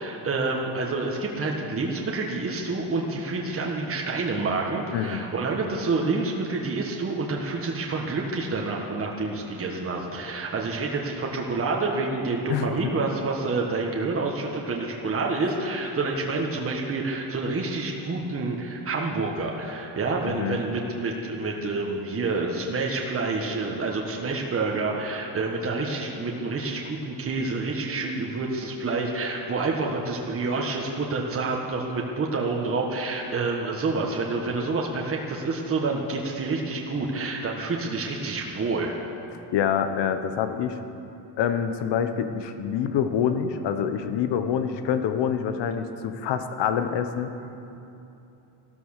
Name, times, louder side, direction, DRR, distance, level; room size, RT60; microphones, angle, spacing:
voice 1, 0.0-39.0, right 3 dB, 30° right, 0 dB, 1.6 m, -28 dB
voice 2, 4.9-5.3 12.5-12.9 20.3-20.6 39.3-40.8 41.4-47.3, left 8 dB, 70° left, 9 dB, 1.2 m, -26 dB
14.5 x 13.0 x 6.7 m, 2.9 s
cardioid pair, 120°, 44 cm